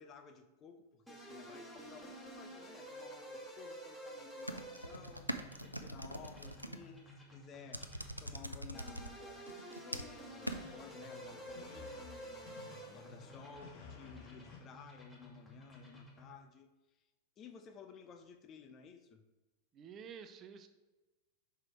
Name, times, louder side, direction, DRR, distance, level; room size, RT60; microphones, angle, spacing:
voice 1, 0.0-5.3 5.6-9.5 9.8-16.7 17.4-19.2, left 7 dB, 30° left, 7 dB, 0.6 m, -55 dB
sound 1, 1.1-16.4, right 1 dB, 5° left, 1.9 m, -51 dB
sound 2, 4.4-6.8 7.7-9.1 9.5-10.2 10.5-10.6, right 1 dB, 90° right, 0.4 m, -42 dB
sound 3, 10.4-14.6, left 5 dB, 50° left, 1.3 m, -54 dB
voice 2, 19.7-20.7, right 7 dB, 30° right, 9 dB, 0.5 m, -50 dB
5.8 x 4.8 x 4.4 m, 1.1 s
figure-of-eight pair, 90°, 0 cm